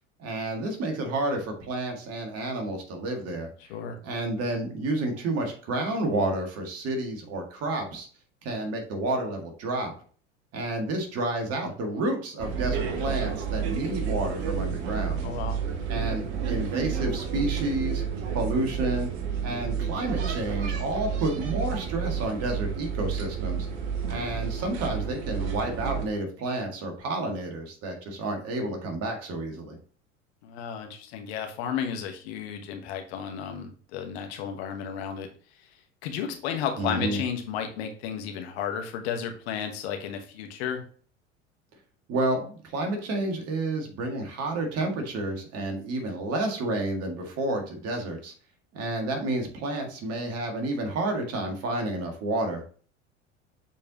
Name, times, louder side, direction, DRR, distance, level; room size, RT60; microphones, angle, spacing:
voice 1, 0.2-3.5 4.0-8.1 8.4-9.9 10.5-15.2 15.9-18.0 18.3-19.1 19.4-23.7 24.1-29.8 36.8-37.2 42.1-48.3 48.7-52.6, right 2 dB, 40° right, 3 dB, 1.9 m, -30 dB
sound 1, 12.4-26.0, right 7 dB, 55° right, 1.2 m, -30 dB
voice 2, 15.2-15.6 30.4-35.3 35.6-35.7 36.0-40.8, left 8 dB, 55° left, 5 dB, 1.2 m, -33 dB
7.2 x 4.5 x 2.9 m, 0.42 s
figure-of-eight pair, 75°, 38 cm